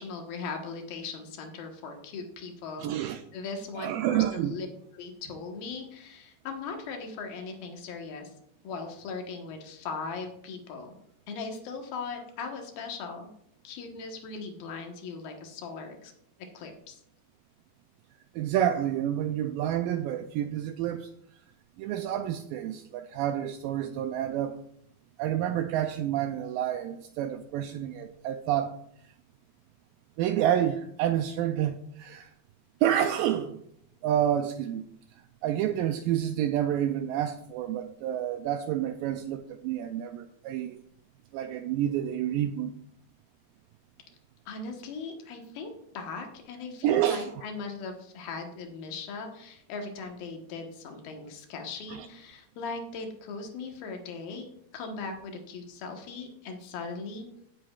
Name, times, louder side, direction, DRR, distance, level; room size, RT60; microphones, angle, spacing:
voice 1, 0.0-2.9 3.3-4.7 4.9-8.3 8.6-10.9 11.3-13.3 13.6-16.1 16.5-17.0 44.5-54.5 54.7-57.3, left 4 dB, 75° left, 3.1 m, -39 dB
voice 2, 2.8-3.2 3.8-4.6 18.4-21.1 21.8-24.6 25.2-28.8 30.2-32.3 32.8-33.6 34.0-34.9 35.4-40.8 41.3-42.8 46.8-47.3 51.9-52.1, right 11 dB, 85° right, 2.0 m, -29 dB
16.0 x 7.8 x 2.4 m
omnidirectional pair, 4.4 m